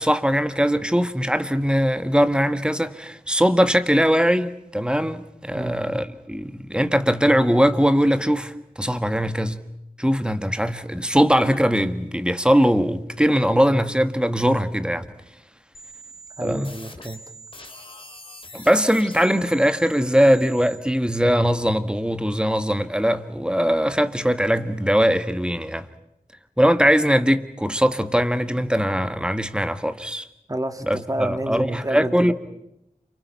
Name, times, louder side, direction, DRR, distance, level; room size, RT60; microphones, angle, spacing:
voice 1, 0.0-9.7 10.0-15.0 16.4-16.7 18.5-25.9 26.6-30.3 30.8-32.3, equal, 5° right, 1.5 m, -21 dB
sound 1, 15.7-20.8, right 1 dB, 35° left, 2.9 m, -43 dB
voice 2, 16.4-17.2 30.5-32.3, right 1 dB, 25° right, 2.1 m, -29 dB
30.0 x 28.5 x 5.7 m
wide cardioid pair, 70°, 15 cm